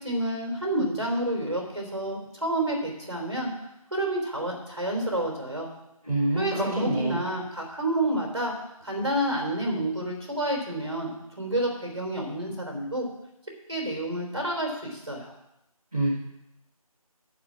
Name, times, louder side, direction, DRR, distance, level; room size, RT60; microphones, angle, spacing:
voice 1, 0.0-3.5 3.9-5.7 6.3-8.5 8.8-13.0 13.7-15.3, right 1 dB, 45° right, 0 dB, 3.4 m, -29 dB
voice 2, 6.0-7.2 15.9-16.1, right 1 dB, 5° right, -18 dB, 1.3 m, -26 dB
11.5 x 4.9 x 8.4 m, 0.85 s
figure-of-eight pair, 175°, 19 cm